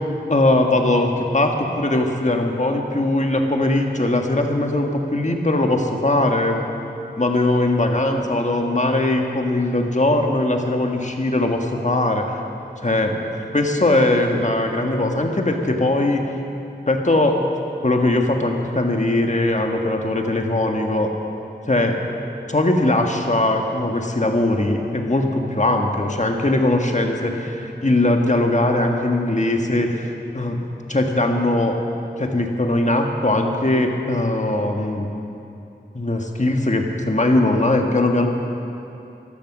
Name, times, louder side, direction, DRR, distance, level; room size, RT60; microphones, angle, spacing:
voice 1, 0.3-6.6 7.2-12.4 12.8-16.2 16.9-17.4 17.8-21.1 21.7-22.0 22.5-30.6 30.9-31.8 32.2-35.1 35.9-38.3, left 2 dB, 40° left, 3 dB, 1.6 m, -20 dB
15.0 x 12.0 x 6.1 m, 2.7 s
wide cardioid pair, 45°, 19 cm